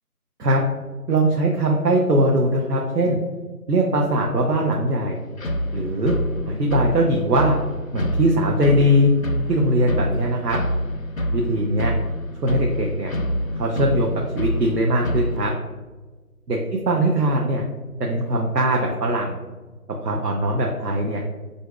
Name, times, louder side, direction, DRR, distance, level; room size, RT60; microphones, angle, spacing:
voice 1, 1.1-3.2 3.7-5.2 5.7-6.1 6.5-7.6 7.9-9.1 9.5-10.6 11.3-11.9 12.4-13.1 13.6-15.5 16.5-16.6 16.9-17.6 18.0-19.4 20.0-21.2, right 1 dB, 90° right, 0 dB, 0.7 m, -21 dB
sound 1, 5.4-15.4, equal, 60° left, 0.5 m, -26 dB
5.0 x 2.6 x 2.3 m, 1.3 s
figure-of-eight pair, 175°, 47 cm